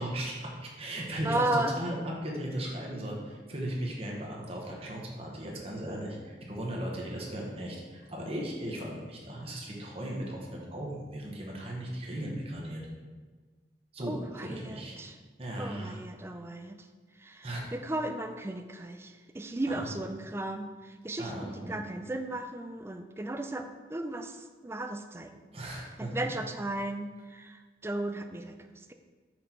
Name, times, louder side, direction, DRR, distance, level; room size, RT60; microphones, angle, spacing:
voice 1, 0.0-1.9 2.2-12.8 13.9-15.0 15.4-16.0 17.4-17.7 19.7-19.9 21.2-21.8 25.5-26.1, right 1 dB, 35° right, -2 dB, 1.2 m, -37 dB
voice 2, 1.2-1.9 14.0-15.2 15.6-16.9 17.2-25.4 26.0-28.9, right 1 dB, 15° right, 7 dB, 0.4 m, -35 dB
6.0 x 5.3 x 4.4 m, 1.4 s
head